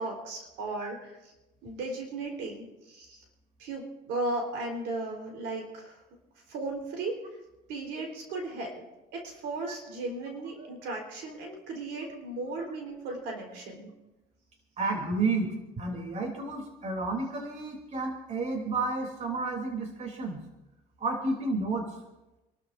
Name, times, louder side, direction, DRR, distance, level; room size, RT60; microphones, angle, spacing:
voice 1, 0.0-1.3 1.6-3.2 3.6-6.0 6.5-7.2 7.7-8.8 9.1-13.9, right 2 dB, 90° right, 1 dB, 4.1 m, -36 dB
voice 2, 14.8-15.5 15.8-20.4 21.0-21.9, right 3 dB, 45° right, 2 dB, 3.2 m, -31 dB
28.0 x 13.0 x 2.6 m, 1.0 s
cardioid pair, 110°, 17 cm